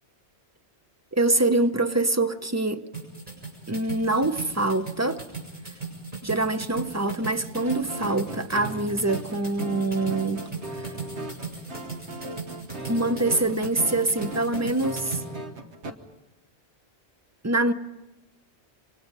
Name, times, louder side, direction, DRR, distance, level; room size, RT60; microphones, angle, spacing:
voice 1, 1.1-2.9 3.7-5.2 6.2-10.5 12.9-15.2 17.4-17.7, right 2 dB, 15° right, 0.7 m, -25 dB
sound 1, 2.9-15.2, right 4 dB, 45° right, 7.8 m, -37 dB
sound 2, 7.5-15.9, right 2 dB, 80° right, 1.6 m, -38 dB
28.5 x 24.5 x 5.4 m
omnidirectional pair, 1.1 m